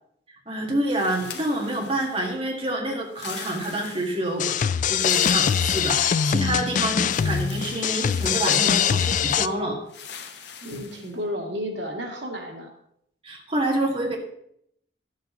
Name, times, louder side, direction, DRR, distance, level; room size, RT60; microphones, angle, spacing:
voice 1, 0.5-9.8 13.2-14.2, right 1 dB, 35° right, -1 dB, 1.8 m, -27 dB
sound 1, 0.9-2.4 3.1-4.4 4.9-6.6 7.1-9.5 9.9-11.1, left 7 dB, 70° left, 1.2 m, -42 dB
sound 2, 4.4-9.5, left 8 dB, 45° left, 0.3 m, -22 dB
voice 2, 10.6-12.7, equal, 85° right, 1 dB, 2.1 m, -32 dB
12.0 x 8.5 x 3.8 m, 0.71 s
head